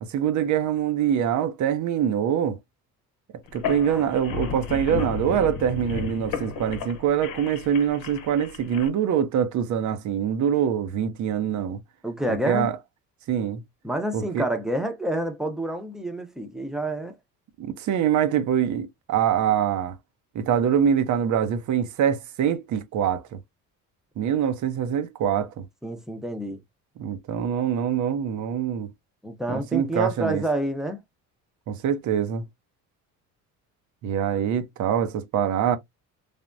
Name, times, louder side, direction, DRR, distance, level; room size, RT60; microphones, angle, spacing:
voice 1, 0.0-2.6 3.5-11.8 12.5-12.7 13.3-13.6 14.1-14.4 17.6-20.0 20.3-23.2 24.2-25.7 27.0-28.9 29.5-30.4 31.7-32.4 34.0-35.8, right 8 dB, 55° right, 0.6 m, -24 dB
sound 1, 3.5-8.9, left 7 dB, 75° left, 0.9 m, -33 dB
voice 2, 12.0-12.7 13.8-17.1 25.8-26.6 29.2-31.0, right 1 dB, ahead, 0.7 m, -28 dB
3.4 x 2.1 x 2.5 m
cardioid pair, 95°, 34 cm